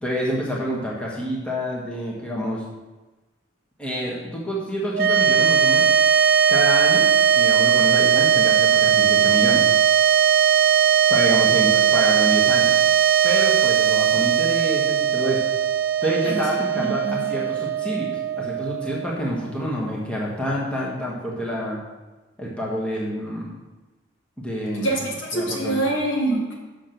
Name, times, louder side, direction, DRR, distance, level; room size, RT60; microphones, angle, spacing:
voice 1, 0.0-2.6 3.8-5.9 6.5-9.6 11.1-12.8 13.2-15.4 16.0-21.8 22.4-23.5 24.4-25.0 25.3-25.8, equal, 5° left, -4 dB, 1.4 m, -28 dB
sound 1, 4.9-19.4, right 8 dB, 50° right, 0.5 m, -19 dB
voice 2, 16.7-17.3 24.7-26.5, right 2 dB, 75° left, -2 dB, 2.1 m, -25 dB
6.6 x 6.3 x 6.0 m, 1.2 s
head